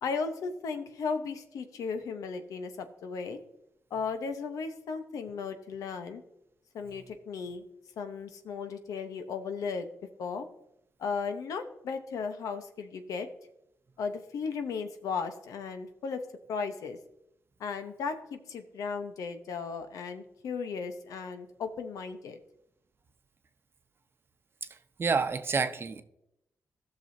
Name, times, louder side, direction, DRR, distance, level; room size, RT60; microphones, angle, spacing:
voice 1, 0.0-3.4 3.9-6.2 6.7-7.6 8.0-9.9 10.2-10.5 11.0-13.3 14.0-16.2 16.5-17.0 17.6-22.4, left 5 dB, 90° left, 7 dB, 0.9 m, -35 dB
voice 2, 25.0-26.0, right 5 dB, 45° right, 9 dB, 0.8 m, -28 dB
16.0 x 6.2 x 2.7 m, 0.82 s
cardioid pair, 85°, 6 cm